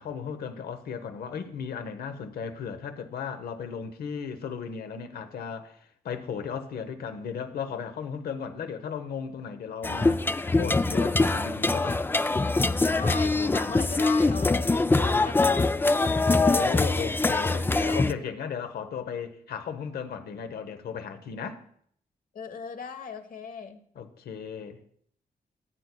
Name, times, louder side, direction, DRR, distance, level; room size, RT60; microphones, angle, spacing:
voice 1, 0.0-5.8 6.0-12.0 16.3-21.6 23.9-24.8, left 7 dB, 90° left, 0.9 m, -36 dB
sound 1, 9.8-18.1, left 3 dB, 15° left, 0.3 m, -23 dB
voice 2, 12.8-16.2 22.3-23.8, left 5 dB, 65° left, 1.1 m, -37 dB
16.0 x 8.2 x 2.2 m
cardioid pair, 80°, 16 cm